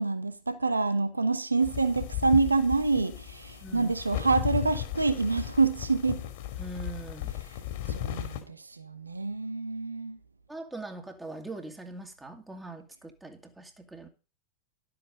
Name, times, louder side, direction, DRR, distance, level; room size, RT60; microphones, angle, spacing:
voice 1, 0.0-6.3 7.5-7.6 7.9-10.2, right 3 dB, 80° right, 1.0 m, -27 dB
sound 1, 1.6-8.4, left 13 dB, 50° left, 2.5 m, -36 dB
voice 2, 3.6-3.9 6.6-7.3 10.5-14.1, right 2 dB, 10° right, 2.0 m, -42 dB
12.5 x 8.0 x 5.2 m
figure-of-eight pair, 90°, 0 cm